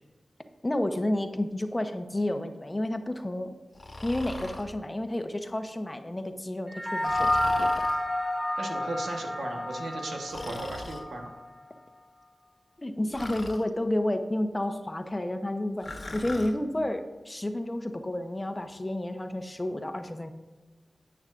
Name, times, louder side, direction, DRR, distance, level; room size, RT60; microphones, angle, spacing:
voice 1, 0.6-3.5 4.0-7.9 12.8-20.3, left 1 dB, 25° left, 7 dB, 0.9 m, -31 dB
Breathing, 3.7-4.7 7.0-8.0 10.3-11.0 13.1-13.6 15.8-16.5, left 1 dB, 50° left, 1.3 m, -40 dB
sound 1, 6.7-11.3, left 1 dB, 10° right, 1.7 m, -29 dB
voice 2, 8.6-11.3, right 2 dB, 90° right, 1 dB, 1.3 m, -36 dB
10.5 x 8.7 x 2.5 m, 1.2 s
cardioid pair, 45°, 0 cm